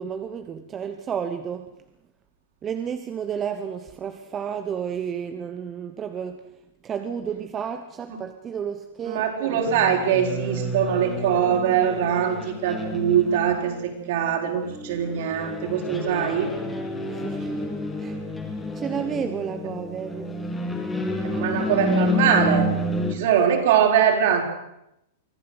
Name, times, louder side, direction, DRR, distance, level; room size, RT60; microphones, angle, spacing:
voice 1, 0.0-1.7 2.6-6.4 6.8-9.6 17.1-17.6 18.0-18.2 18.7-20.3, right 7 dB, 15° right, 7 dB, 1.1 m, -31 dB
voice 2, 9.0-16.5 21.2-22.7 23.1-24.4, right 8 dB, 55° right, 3 dB, 4.8 m, -22 dB
sound 1, 9.6-23.1, left 1 dB, 5° left, 2.4 m, -29 dB
24.5 x 15.0 x 8.0 m, 0.84 s
supercardioid pair, 165°, 0 cm